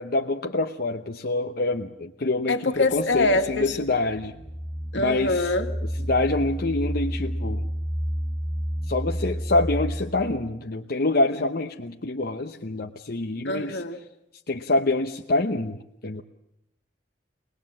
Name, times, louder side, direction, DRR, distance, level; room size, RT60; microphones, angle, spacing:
voice 1, 0.0-4.3 4.9-5.5 6.1-7.7 8.9-13.8 14.5-16.2, left 2 dB, 55° left, 3 dB, 0.9 m, -26 dB
voice 2, 2.5-3.8 4.9-5.7 13.4-14.0, left 2 dB, 80° left, 5 dB, 2.1 m, -24 dB
sound 1, 2.7-10.6, equal, 10° right, 1.8 m, -31 dB
24.0 x 19.5 x 7.5 m, 0.86 s
head